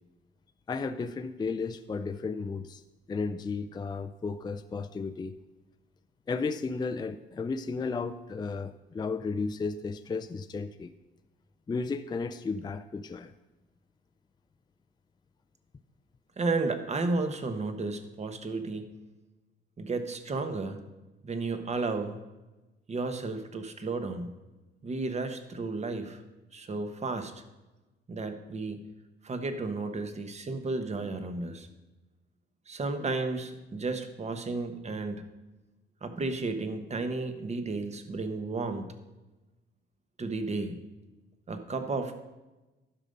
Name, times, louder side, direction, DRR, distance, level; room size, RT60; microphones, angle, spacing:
voice 1, 0.7-2.8 3.1-5.3 6.3-10.9 11.7-13.3, left 4 dB, 20° left, 9 dB, 0.4 m, -34 dB
voice 2, 16.4-19.0 19.8-20.8 21.2-22.2 22.9-24.3 24.8-26.2 26.5-27.3 28.1-28.9 29.2-31.7 32.7-35.3 36.0-38.9 40.2-40.8 41.5-42.2, right 3 dB, 35° right, 8 dB, 1.1 m, -33 dB
11.5 x 5.4 x 5.2 m, 1.1 s
cardioid pair, 90°, 20 cm